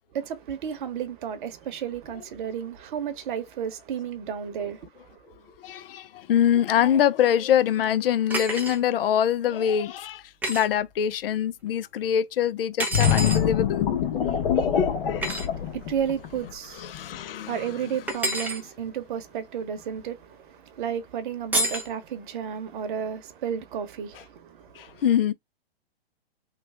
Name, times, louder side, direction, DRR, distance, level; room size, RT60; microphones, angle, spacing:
voice 1, 0.1-4.9 15.5-25.0, right 8 dB, 50° right, 0.9 m, -33 dB
voice 2, 5.6-10.2 10.5-13.9 14.1-15.3 16.8-17.7 24.8-25.3, left 9 dB, 65° left, 0.5 m, -24 dB
sound 1, 8.3-8.8 10.4-10.7 12.8-13.4 15.2-15.5 18.1-18.6 21.5-21.9, right 1 dB, 5° right, 0.6 m, -28 dB
sound 2, 12.9-16.5 16.9-17.2, left 8 dB, 50° left, 1.4 m, -24 dB
3.2 x 2.3 x 3.4 m
hypercardioid pair, 125°, 31 cm